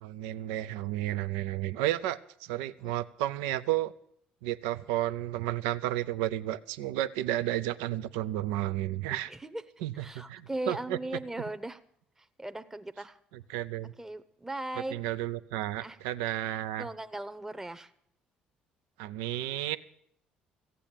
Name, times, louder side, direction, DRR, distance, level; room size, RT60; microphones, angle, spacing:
voice 1, 0.0-3.9 4.4-9.3 9.8-11.0 13.5-13.9 14.9-16.9 19.0-19.8, right 14 dB, 90° right, 14 dB, 0.5 m, -32 dB
voice 2, 9.1-9.6 10.0-11.8 12.2-13.2 14.0-15.0 15.8-16.0 16.8-17.9, right 1 dB, 10° right, 9 dB, 0.8 m, -38 dB
15.5 x 8.4 x 8.9 m, 0.67 s
supercardioid pair, 75°, 3 cm